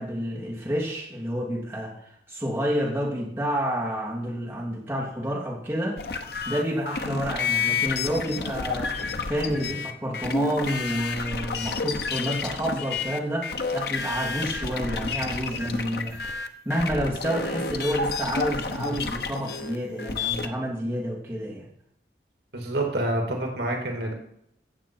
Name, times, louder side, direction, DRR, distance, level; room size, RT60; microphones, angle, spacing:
voice 1, 0.0-6.0 6.4-16.4 16.6-21.7, equal, 10° right, -5 dB, 3.1 m, -29 dB
sound 1, 6.0-20.5, left 4 dB, 65° left, 0.9 m, -30 dB
voice 2, 22.5-24.1, right 1 dB, 75° right, 2 dB, 2.1 m, -27 dB
15.5 x 7.4 x 4.4 m, 0.73 s
head